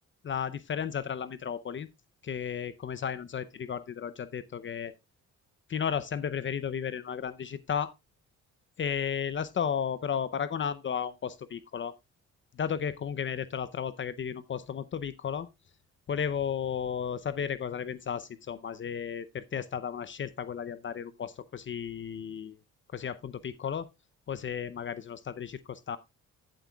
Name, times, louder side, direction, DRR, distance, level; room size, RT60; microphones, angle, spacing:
voice 1, 0.2-1.9 2.2-4.9 5.7-7.9 8.8-11.9 12.5-15.5 16.1-22.5 22.9-23.9 24.3-26.0, left 7 dB, 40° left, 0.6 m, -34 dB
14.5 x 7.8 x 2.3 m
cardioid pair, 90°, 30 cm